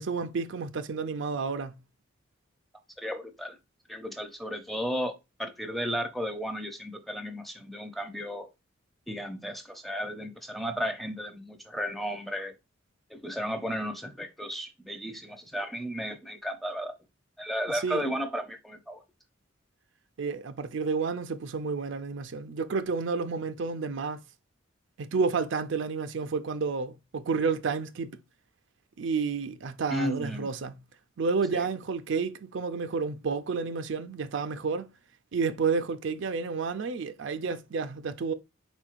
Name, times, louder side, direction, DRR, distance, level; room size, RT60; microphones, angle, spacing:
voice 1, 0.0-1.7 17.8-18.0 20.2-24.2 25.0-28.2 29.0-30.7 31.2-34.9 35.3-38.3, right 5 dB, 65° right, 0.4 m, -30 dB
voice 2, 3.0-3.6 3.9-8.5 9.1-12.5 13.1-16.9 17.4-19.0 29.9-30.5 31.5-31.7, equal, ahead, 0.6 m, -34 dB
4.5 x 4.3 x 2.5 m
head